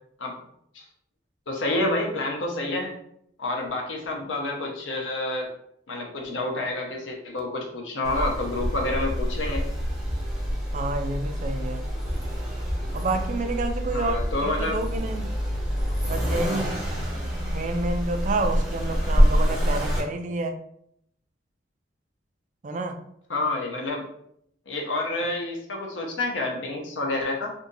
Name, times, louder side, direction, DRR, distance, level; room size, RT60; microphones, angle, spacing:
voice 1, 1.5-2.9 3.4-5.5 5.9-9.6 13.9-14.8 23.3-24.0 24.7-27.5, left 2 dB, 90° left, 1 dB, 0.8 m, -28 dB
Accelerating revving vroom, 8.0-20.0, equal, ahead, 0.9 m, -26 dB
voice 2, 10.7-11.8 12.9-15.3 16.1-16.8 17.2-20.6 22.6-23.0, right 2 dB, 40° right, 6 dB, 0.3 m, -29 dB
2.7 x 2.6 x 3.8 m, 0.71 s
head